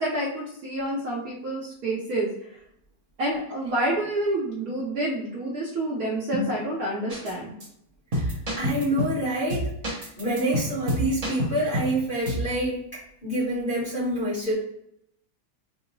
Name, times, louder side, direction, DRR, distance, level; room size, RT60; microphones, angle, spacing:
voice 1, 0.0-2.3 3.2-7.6, right 1 dB, 65° right, -4 dB, 1.0 m, -28 dB
sound 1, 7.1-7.3 7.6-7.7 8.1-9.2 9.5-12.0 12.3-12.5, equal, 50° right, 0.4 m, -28 dB
voice 2, 8.1-14.5, right 1 dB, 35° left, -10 dB, 1.0 m, -27 dB
3.7 x 2.0 x 3.8 m, 0.73 s
omnidirectional pair, 1.9 m